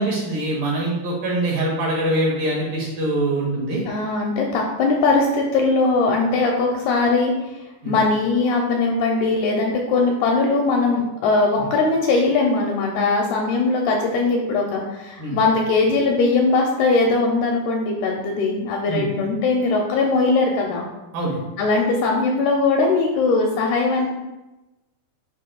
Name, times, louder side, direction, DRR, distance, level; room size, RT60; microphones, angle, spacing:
voice 1, 0.0-3.8 7.8-8.0 15.2-15.4 18.9-19.1 21.1-21.4, right 1 dB, 65° right, -4 dB, 2.4 m, -23 dB
voice 2, 3.8-7.3 7.9-20.9 21.6-24.1, left 3 dB, 85° left, 0 dB, 2.3 m, -20 dB
10.0 x 5.3 x 2.3 m, 1.0 s
omnidirectional pair, 5.0 m